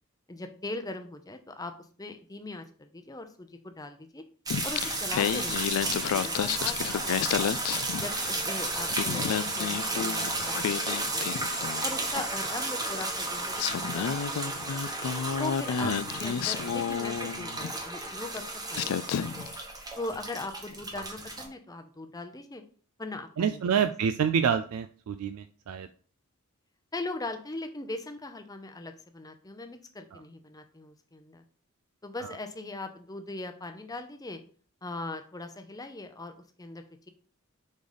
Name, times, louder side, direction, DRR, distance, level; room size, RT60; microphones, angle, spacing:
voice 1, 0.3-1.7 2.0-4.2 4.6-7.5 7.9-11.4 11.8-14.8 15.4-19.5 20.0-22.6 23.0-23.9 24.3-24.4 26.9-31.4 32.0-34.4 34.8-37.1, left 2 dB, 15° left, 7 dB, 0.7 m, -40 dB
Singing, 4.5-8.5 8.8-12.0 13.0-13.1 13.6-17.8 18.4-18.5 18.7-19.6, left 8 dB, 90° left, 0.4 m, -31 dB
sound 1, 4.5-21.5, right 2 dB, 15° right, 1.0 m, -33 dB
voice 2, 23.4-25.9, right 7 dB, 85° right, 10 dB, 0.4 m, -27 dB
5.3 x 4.0 x 4.9 m, 0.43 s
head